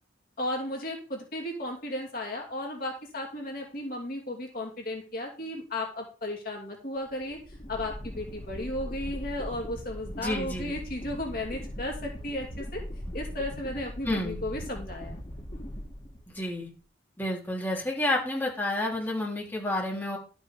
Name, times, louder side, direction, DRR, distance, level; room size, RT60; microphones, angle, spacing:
voice 1, 0.4-7.4 7.7-12.8 13.1-15.2, left 1 dB, 45° left, 0 dB, 2.7 m, -34 dB
sound 1, 7.1-16.6, equal, 30° left, 2.3 m, -40 dB
voice 2, 10.2-10.7 14.0-14.4 16.3-16.7 17.2-20.2, left 1 dB, 10° left, -4 dB, 3.4 m, -30 dB
12.5 x 6.3 x 5.3 m, 0.35 s
head